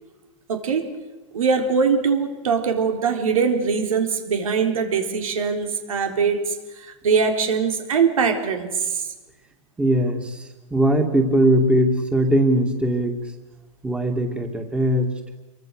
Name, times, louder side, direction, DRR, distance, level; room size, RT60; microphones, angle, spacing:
voice 1, 0.5-0.9 1.3-6.5 7.0-8.7, right 5 dB, 85° right, 4 dB, 4.2 m, -22 dB
voice 2, 9.8-13.2 13.8-15.1, right 1 dB, 5° right, 3 dB, 2.6 m, -20 dB
28.0 x 23.5 x 6.7 m, 1.1 s
hypercardioid pair, 135°, 17 cm